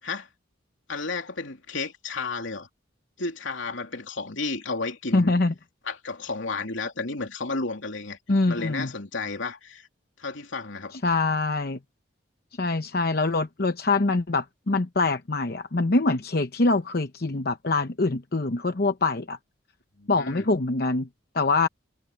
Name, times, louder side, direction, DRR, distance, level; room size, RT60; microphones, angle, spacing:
voice 1, 0.9-2.7 3.2-5.3 5.8-8.2 8.5-9.9 10.2-10.9 20.0-20.4, left 3 dB, 75° left, 3.0 m, -32 dB
voice 2, 5.1-5.5 8.3-8.9 10.9-11.8 12.6-19.4 20.1-21.1 21.3-21.7, left 3 dB, 50° left, 0.9 m, -24 dB
head